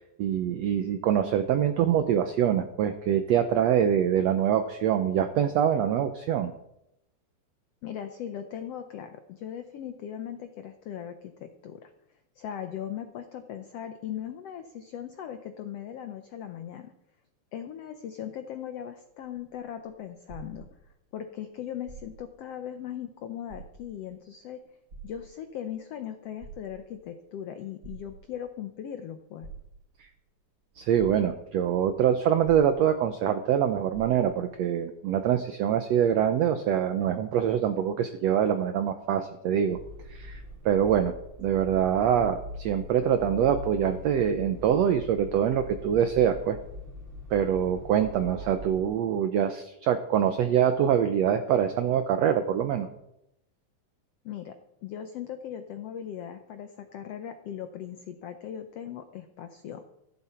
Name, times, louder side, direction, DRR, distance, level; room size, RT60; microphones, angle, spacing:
voice 1, 0.2-6.5 30.8-39.8 40.1-40.4 40.6-41.1 41.4-46.6 47.3-52.9, right 9 dB, 85° right, 9 dB, 1.5 m, -24 dB
voice 2, 7.8-11.9 12.4-16.9 17.5-20.7 21.1-24.6 25.0-29.5 54.2-54.6 54.8-59.8, left 9 dB, 85° left, 8 dB, 1.3 m, -39 dB
sound 1, 19.1-21.2 21.8-22.4 22.9-23.0 23.4-24.1 24.9-25.7 26.2-27.1 27.8-28.6 29.4-30.1 30.6-30.7 31.0-31.7 32.4-33.3 33.5-33.6 33.9-34.5 35.3-35.4, right 5 dB, 40° right, 3.7 m, -47 dB
sound 2, 39.6-48.8, left 1 dB, 20° right, 1.8 m, -42 dB
15.0 x 13.0 x 4.3 m, 0.84 s
omnidirectional pair, 3.9 m